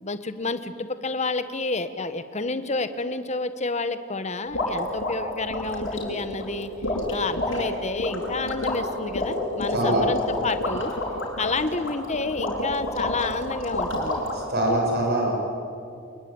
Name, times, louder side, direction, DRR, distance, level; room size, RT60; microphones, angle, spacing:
voice 1, 0.0-6.7 7.1-11.0 11.4-14.2, left 3 dB, 35° left, 11 dB, 1.3 m, -29 dB
sound 1, 4.5-14.4, left 1 dB, 70° left, 6.9 m, -29 dB
voice 2, 9.7-10.1 14.3-15.3, right 1 dB, 55° right, 0 dB, 7.1 m, -23 dB
27.5 x 21.5 x 8.9 m, 2.6 s
head